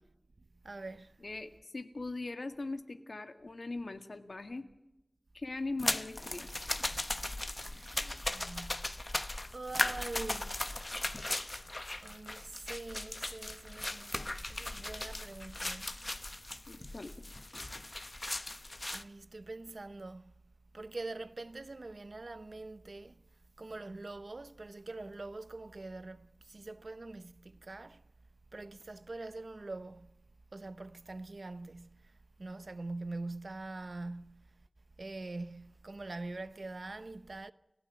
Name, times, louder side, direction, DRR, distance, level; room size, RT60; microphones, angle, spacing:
voice 1, 0.4-1.2 7.7-9.0 9.5-10.6 12.0-16.0 18.9-20.3 20.7-23.2 23.6-28.0 28.5-30.2 30.5-34.6 35.0-37.5, right 2 dB, 80° right, 0.8 m, -44 dB
voice 2, 1.2-4.6 5.3-6.5 16.7-17.1, left 2 dB, 85° left, 1.8 m, -40 dB
sound 1, 5.8-19.0, left 1 dB, 40° left, 1.0 m, -37 dB
30.0 x 16.0 x 9.4 m
wide cardioid pair, 55°, 0 cm